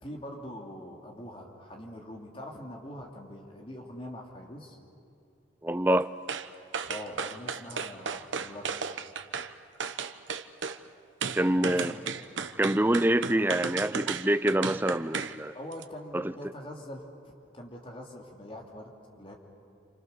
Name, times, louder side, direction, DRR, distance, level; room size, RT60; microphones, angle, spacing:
voice 1, 0.0-4.8 6.8-8.7 11.5-12.1 15.5-18.9 19.2-19.3, left 1 dB, 30° left, 2.9 m, -43 dB
voice 2, 5.6-6.1 11.3-11.9 12.6-15.5 16.1-16.2, right 1 dB, 10° right, 0.5 m, -26 dB
sound 1, 6.3-6.5 6.7-9.5 9.8-10.8 11.2-15.4 15.7-15.8, right 5 dB, 80° right, 1.0 m, -34 dB
29.5 x 27.5 x 6.8 m
head